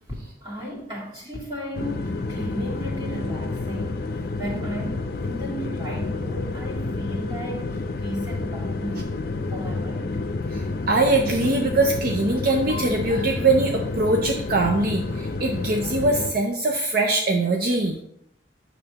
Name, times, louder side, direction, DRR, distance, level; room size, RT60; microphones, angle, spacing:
voice 1, 0.4-4.0 4.4-9.1 9.5-10.2, equal, 25° right, -5 dB, 2.4 m, -34 dB
sound 1, 1.7-16.3, left 3 dB, 60° left, 0.5 m, -29 dB
voice 2, 10.5-18.0, right 2 dB, 55° right, 3 dB, 0.6 m, -22 dB
8.6 x 6.7 x 2.9 m, 0.77 s
head